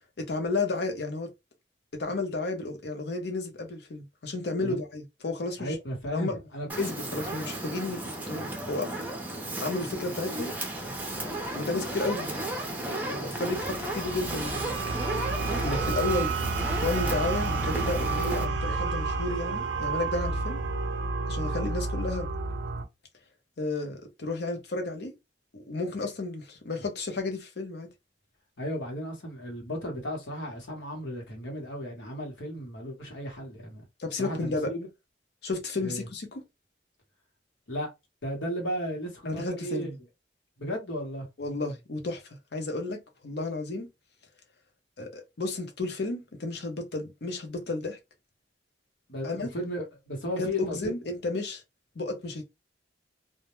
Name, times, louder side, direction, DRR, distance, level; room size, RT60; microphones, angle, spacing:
voice 1, 0.2-1.3 1.9-5.7 6.1-6.4 6.8-9.0 9.6-10.5 11.2-12.4 12.8-14.7 15.6-16.3 16.8-20.6 21.3-22.3 23.6-25.1 25.5-27.9 34.0-34.7 35.4-36.3 39.2-40.0 41.4-42.2 42.5-43.9 45.0-48.0 49.2-49.5 50.4-51.6 52.0-52.4, left 3 dB, 60° left, 0.7 m, -32 dB
voice 2, 5.6-6.7 28.6-33.8 34.2-34.9 35.8-36.1 37.7-37.9 38.2-39.9 40.6-41.3 49.1-50.8, equal, 85° left, 1.0 m, -34 dB
Fire, 6.7-18.4, right 1 dB, 10° right, 0.5 m, -34 dB
sound 1, 13.5-22.8, right 3 dB, 75° right, 0.5 m, -30 dB
2.2 x 2.1 x 2.9 m
head